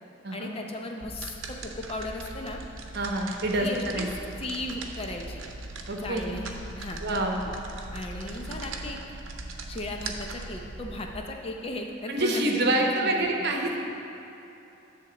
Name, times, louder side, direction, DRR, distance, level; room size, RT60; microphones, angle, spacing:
voice 1, 0.3-2.6 3.6-4.1 4.4-5.4 6.0-7.0 7.9-9.0 9.7-13.5, left 1 dB, 30° left, 2 dB, 0.6 m, -36 dB
sound 1, 1.0-11.2, right 2 dB, 85° right, 0.7 m, -40 dB
voice 2, 2.9-4.1 5.9-6.2 7.0-7.4 12.1-13.8, right 1 dB, 55° right, 1 dB, 0.9 m, -26 dB
10.0 x 3.6 x 6.9 m, 3.0 s
head